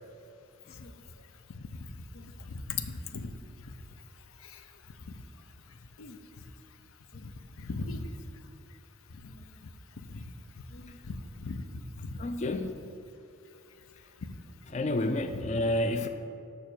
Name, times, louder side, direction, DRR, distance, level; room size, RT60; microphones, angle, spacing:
voice 1, 2.1-3.3 3.7-3.8 4.4-4.6 6.0-6.2 7.1-8.1 9.2-9.4 10.0-10.2 10.7-11.6 12.0-12.1 15.3-15.4 16.0-16.1, left 4 dB, 90° left, 8 dB, 0.6 m, -39 dB
voice 2, 12.2-12.7 14.7-16.1, left 1 dB, 35° left, 8 dB, 0.3 m, -29 dB
6.8 x 6.0 x 6.6 m, 2.7 s
head